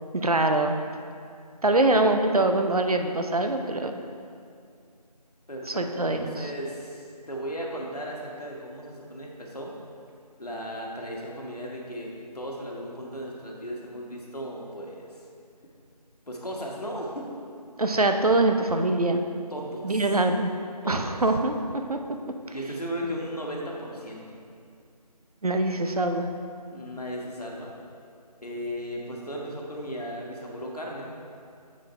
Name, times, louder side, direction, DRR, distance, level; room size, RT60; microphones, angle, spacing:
voice 1, 0.1-0.8 1.6-4.0 5.7-6.5 17.8-19.2 19.8-20.5 20.9-22.0 22.5-22.6 25.4-26.3, right 2 dB, 60° right, 6 dB, 0.6 m, -24 dB
voice 2, 1.7-2.1 5.5-9.7 10.4-15.1 16.3-17.3 19.5-20.0 20.8-21.1 22.5-24.2 26.7-27.7 28.4-31.1, equal, 65° left, -2 dB, 1.5 m, -36 dB
9.2 x 4.2 x 4.4 m, 2.3 s
figure-of-eight pair, 170°, 21 cm